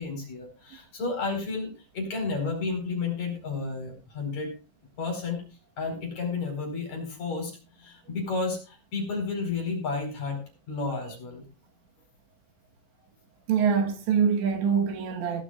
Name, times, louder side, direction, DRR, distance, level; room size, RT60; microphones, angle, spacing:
voice 1, 0.0-4.5 5.0-5.4 5.8-7.5 7.8-10.4 10.7-11.4, left 4 dB, 40° left, 5.8 m, -32 dB
voice 2, 13.5-15.4, right 6 dB, 80° right, 3.8 m, -24 dB
19.0 x 12.5 x 2.5 m
omnidirectional pair, 5.2 m